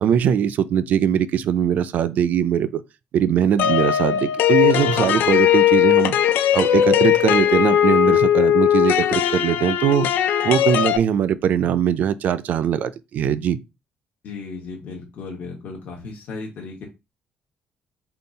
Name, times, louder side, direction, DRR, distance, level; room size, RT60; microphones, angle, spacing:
voice 1, 0.0-2.8 3.1-6.2 6.5-10.1 10.4-13.6, right 9 dB, 50° right, 0.3 m, -21 dB
sound 1, 3.6-11.0, left 10 dB, 75° left, 0.4 m, -18 dB
voice 2, 14.2-16.9, left 4 dB, 55° left, 0.9 m, -35 dB
3.7 x 2.3 x 3.9 m
cardioid pair, 155°, 3 cm